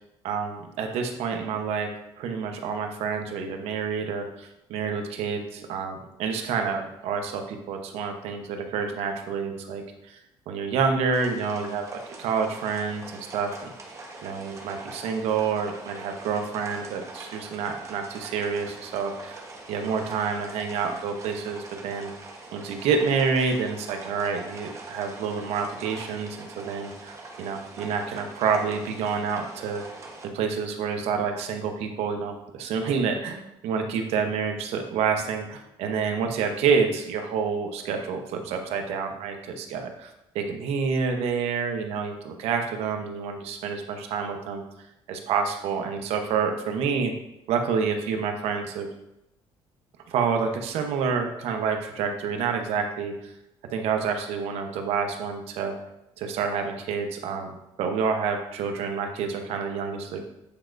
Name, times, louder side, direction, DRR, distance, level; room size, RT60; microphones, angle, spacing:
voice 1, 0.2-1.9 2.2-10.2 10.5-13.7 14.2-19.4 19.7-22.1 22.5-29.8 30.2-40.1 40.3-44.6 45.1-47.1 47.5-48.9 50.1-53.1 53.7-55.7 56.2-60.2, right 5 dB, 80° right, 4 dB, 0.9 m, -28 dB
sound 1, 11.1-30.3, right 2 dB, 30° right, 1.1 m, -43 dB
8.6 x 4.4 x 2.6 m, 0.87 s
cardioid pair, 120°, 10 cm